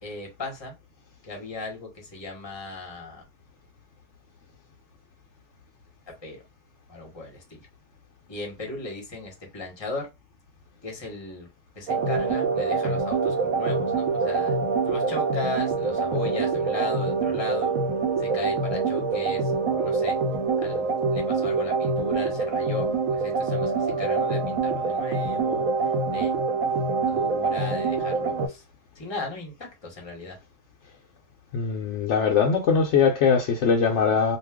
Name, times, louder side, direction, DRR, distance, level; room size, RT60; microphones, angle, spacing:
voice 1, 0.0-0.7 1.3-3.2 6.2-6.4 6.9-7.6 8.3-10.1 10.8-11.5 11.8-14.6 14.8-17.7 18.2-20.1 20.6-26.3 27.1-28.6 29.0-29.5 29.8-30.4, left 2 dB, 20° left, 0.9 m, -36 dB
sound 1, 11.9-28.5, right 4 dB, 85° right, 1.1 m, -25 dB
voice 2, 31.5-34.4, left 6 dB, 65° left, 0.9 m, -21 dB
2.5 x 2.3 x 3.4 m
omnidirectional pair, 1.4 m